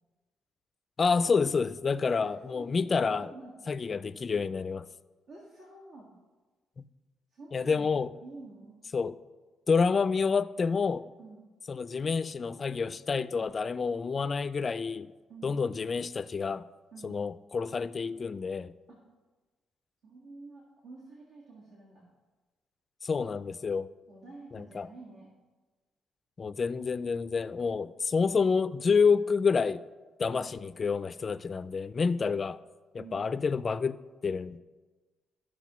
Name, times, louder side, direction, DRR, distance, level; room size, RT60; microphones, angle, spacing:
voice 1, 1.0-3.3 3.7-4.9 6.8-6.9 7.5-8.1 8.9-9.1 9.7-11.0 11.7-15.1 15.4-16.6 17.0-18.7 23.0-23.9 24.5-24.9 26.4-29.8 30.2-32.6 33.1-34.6, left 5 dB, 40° left, 0.3 m, -28 dB
voice 2, 2.1-3.6 5.3-6.1 7.3-7.9 8.2-8.8 11.2-11.5 15.3-15.6 16.9-17.2 18.9-19.0 20.0-22.0 24.1-25.3 30.3-30.5 33.0-33.3, right 3 dB, 75° right, 1.9 m, -49 dB
13.5 x 6.1 x 3.1 m
cardioid pair, 90°, 0 cm